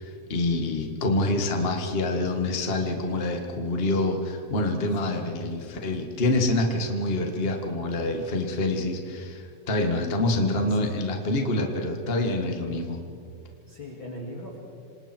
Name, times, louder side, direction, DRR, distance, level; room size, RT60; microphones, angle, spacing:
voice 1, 0.0-13.0, left 2 dB, 50° left, 3 dB, 0.6 m, -26 dB
voice 2, 5.0-5.4 10.4-10.9 13.7-14.6, equal, 35° left, -3 dB, 3.0 m, -40 dB
27.5 x 27.0 x 4.5 m, 2.3 s
omnidirectional pair, 4.4 m